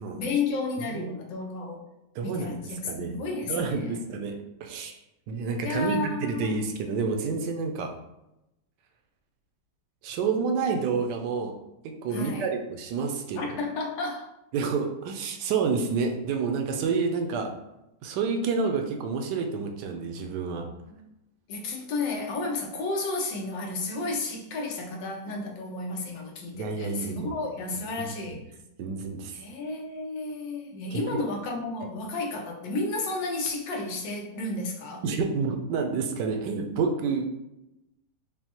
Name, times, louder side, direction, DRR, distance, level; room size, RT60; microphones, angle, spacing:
voice 1, 0.2-1.8 2.2-3.8 5.6-6.6 12.1-12.5 13.4-14.3 20.9-21.0 21.5-28.4 29.3-35.0, left 3 dB, 85° left, 1 dB, 1.4 m, -32 dB
voice 2, 2.1-3.2 3.5-4.3 4.6-5.0 5.3-7.9 10.0-11.5 11.8-13.4 14.5-17.5 18.0-20.7 26.5-27.3 28.3-28.4 28.8-29.4 30.9-31.2 35.0-37.3, right 5 dB, 75° right, 4 dB, 1.1 m, -29 dB
5.4 x 2.2 x 2.9 m, 0.89 s
omnidirectional pair, 1.9 m